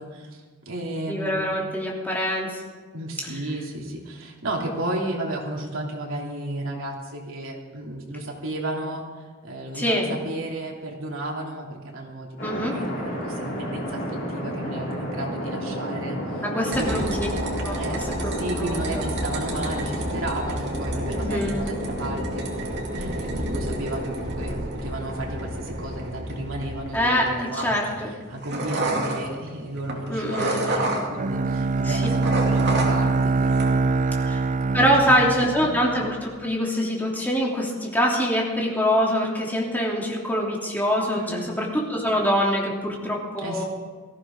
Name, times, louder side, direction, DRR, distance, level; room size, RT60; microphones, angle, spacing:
voice 1, 0.0-1.4 2.9-17.1 17.7-18.0 18.3-22.7 22.9-33.9 34.8-35.7 41.1-41.5 43.4-43.6, right 1 dB, 75° right, -1 dB, 3.1 m, -33 dB
voice 2, 1.1-2.6 9.7-10.1 12.4-12.8 16.4-17.3 17.6-17.8 18.2-18.8 21.1-21.6 26.9-28.1 30.1-30.6 31.8-32.0 34.2-34.4 34.7-43.6, equal, 10° left, -3 dB, 3.0 m, -24 dB
sound 1, 12.4-22.9, equal, 60° left, 5.9 m, -33 dB
sound 2, 16.7-31.6 31.9-33.2 33.5-34.0, right 1 dB, 55° right, 2.6 m, -30 dB
Bowed string instrument, 31.2-36.2, right 3 dB, 40° right, 0.5 m, -24 dB
18.5 x 14.5 x 3.8 m, 1.5 s
head